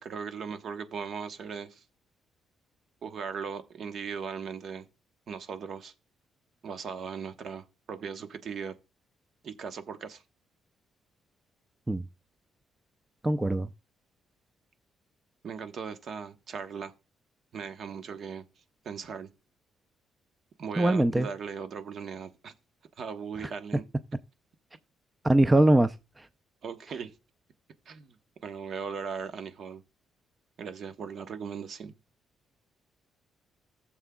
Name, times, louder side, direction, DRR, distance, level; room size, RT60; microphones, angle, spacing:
voice 1, 0.0-1.8 3.0-4.9 5.3-5.9 6.6-8.7 9.4-10.2 15.4-16.9 17.5-18.4 18.8-19.3 20.6-22.5 23.0-23.8 26.6-27.1 27.9-28.2 28.4-29.8 30.6-31.9, right 6 dB, 60° right, 1.0 m, -38 dB
voice 2, 13.2-13.7 20.8-21.3 23.4-23.5 25.2-26.2, right 1 dB, 15° right, 0.5 m, -22 dB
15.0 x 7.2 x 2.3 m
cardioid pair, 90°, 0 cm